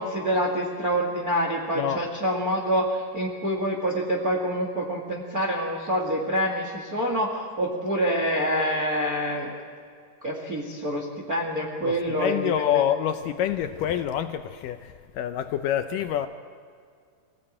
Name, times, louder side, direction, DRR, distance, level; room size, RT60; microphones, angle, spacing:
voice 1, 0.0-9.5 10.2-12.8, equal, 30° right, 0 dB, 1.9 m, -26 dB
voice 2, 11.8-16.3, left 10 dB, 80° left, 8 dB, 2.0 m, -27 dB
25.0 x 17.0 x 8.8 m, 2.2 s
omnidirectional pair, 4.6 m